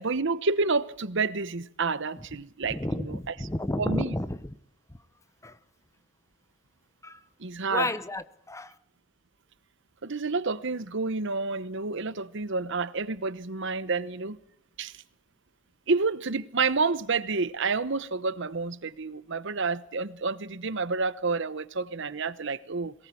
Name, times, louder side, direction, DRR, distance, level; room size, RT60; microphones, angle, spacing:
voice 1, 0.0-3.2 3.8-4.1 7.4-7.9 10.0-14.4 14.8-15.0 15.9-22.9, right 4 dB, 65° right, 1.0 m, -29 dB
voice 2, 2.7-4.5 5.4-5.6 7.0-7.2 7.7-8.8, left 1 dB, 15° left, 1.0 m, -31 dB
22.5 x 18.5 x 8.6 m
head